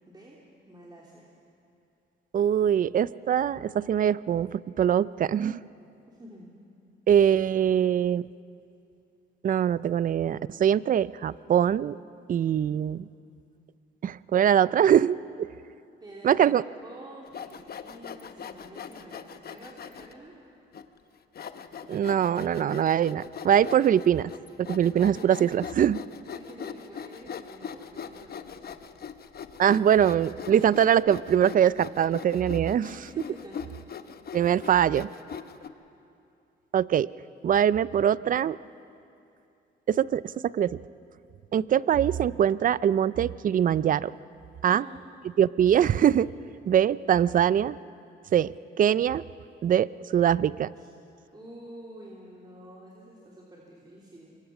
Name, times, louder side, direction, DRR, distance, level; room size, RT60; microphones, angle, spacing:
voice 1, 0.1-0.4 0.6-1.2 6.1-6.5 16.0-16.5 16.8-20.3 24.8-25.3 26.3-28.7 32.9-33.6 44.7-45.0 50.8-50.9 51.3-54.4, right 1 dB, 20° right, -4 dB, 3.2 m, -48 dB
voice 2, 2.3-5.6 7.1-8.2 9.4-12.0 12.3-13.1 14.0-15.5 16.2-16.6 21.9-24.3 24.6-26.0 29.6-32.9 34.3-35.1 36.7-37.1 37.4-38.6 39.9-40.8 41.5-44.1 44.6-44.8 45.4-46.3 46.7-47.8 48.3-49.2 49.6-50.7, right 9 dB, 45° right, 19 dB, 0.5 m, -23 dB
Sawing, 17.3-20.1 20.7-20.8 21.3-35.7, left 7 dB, 50° left, 1.0 m, -41 dB
25.5 x 22.5 x 6.0 m, 2.6 s
cardioid pair, 90°, 20 cm